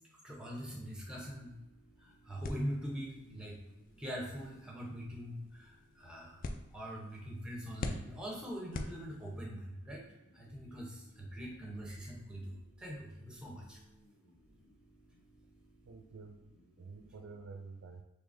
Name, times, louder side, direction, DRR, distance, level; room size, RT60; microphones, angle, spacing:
voice 1, 0.2-1.6 2.0-3.6 4.0-6.5 6.7-10.1 10.3-13.8, equal, 5° right, -2 dB, 0.7 m, -43 dB
sound 1, 0.7-17.5, right 1 dB, 75° left, 1.2 m, -65 dB
sound 2, 2.4-9.6, left 2 dB, 40° left, 0.3 m, -46 dB
voice 2, 15.9-18.0, right 4 dB, 75° right, 3 dB, 0.4 m, -50 dB
3.7 x 3.3 x 2.5 m, 0.97 s
head